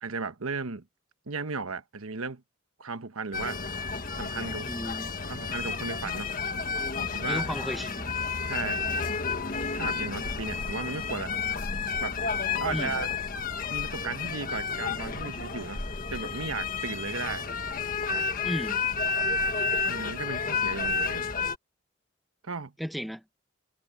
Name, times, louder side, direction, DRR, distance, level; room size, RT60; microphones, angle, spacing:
voice 1, 0.0-0.9 1.3-2.4 2.8-3.6 4.1-4.7 5.3-6.3 7.0-7.4 8.4-8.8 9.7-11.3 12.0-12.2 12.6-13.1 13.7-15.8 16.1-17.4 18.1-18.3 19.9-21.3 22.4-22.7, right 4 dB, 90° right, 1.2 m, -35 dB
sound 1, 3.3-21.6, left 4 dB, 40° left, 1.4 m, -31 dB
voice 2, 4.6-5.1 7.3-8.1 12.7-12.9 18.4-18.8 22.8-23.2, equal, ahead, 0.9 m, -34 dB
head